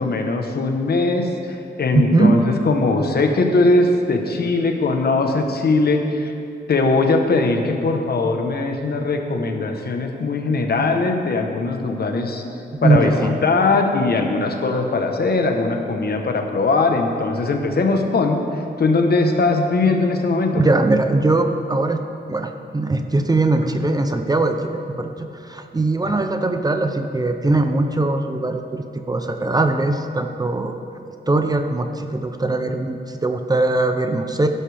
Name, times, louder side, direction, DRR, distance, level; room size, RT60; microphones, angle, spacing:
voice 1, 0.0-6.3 6.7-12.4 12.8-20.6, left 3 dB, 60° left, 4 dB, 1.1 m, -20 dB
voice 2, 1.9-2.4 12.8-13.3 20.5-22.0 22.3-24.7 25.0-30.7 31.3-34.5, right 2 dB, 20° right, 6 dB, 0.6 m, -20 dB
16.0 x 11.5 x 3.5 m, 2.6 s
wide cardioid pair, 150°, 18 cm